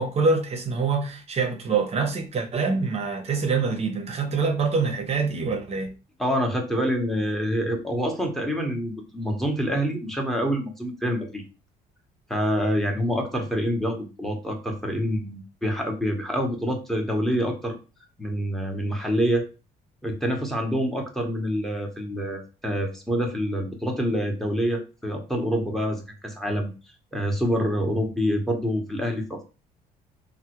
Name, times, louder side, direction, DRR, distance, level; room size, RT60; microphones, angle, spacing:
voice 1, 0.0-5.9, right 4 dB, 40° right, 0.7 m, -25 dB
voice 2, 6.2-11.4 12.3-17.8 18.2-19.5 20.0-26.7 27.1-29.4, equal, ahead, 0.8 m, -26 dB
3.4 x 2.1 x 2.9 m
cardioid pair, 110°, 17 cm